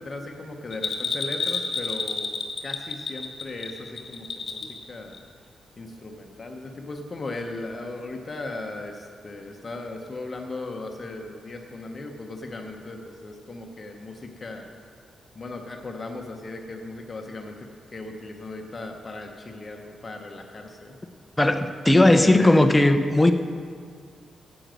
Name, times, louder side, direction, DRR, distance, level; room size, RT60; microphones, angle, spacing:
voice 1, 0.0-2.3 2.6-5.2 5.8-14.7 15.3-21.0 21.9-22.4, left 2 dB, 25° left, 3 dB, 0.9 m, -37 dB
Bell, 0.7-4.8 5.1-5.2, left 4 dB, 40° left, 1.3 m, -30 dB
voice 2, 21.4-23.3, left 1 dB, 10° left, 7 dB, 0.6 m, -17 dB
10.0 x 7.9 x 7.5 m, 2.1 s
wide cardioid pair, 165°, 0 cm